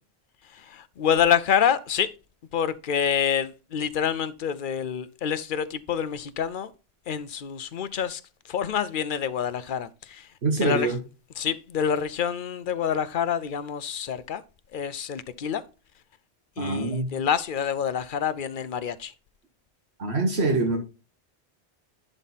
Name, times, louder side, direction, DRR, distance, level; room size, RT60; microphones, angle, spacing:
voice 1, 0.5-2.1 2.5-6.7 7.1-10.3 10.6-10.9 11.4-14.4 14.7-15.6 16.6-19.1, left 8 dB, 55° left, 0.7 m, -27 dB
voice 2, 10.4-11.0 16.6-17.1 20.0-20.8, right 3 dB, 75° right, 1.5 m, -24 dB
11.0 x 4.1 x 4.1 m
omnidirectional pair, 1.1 m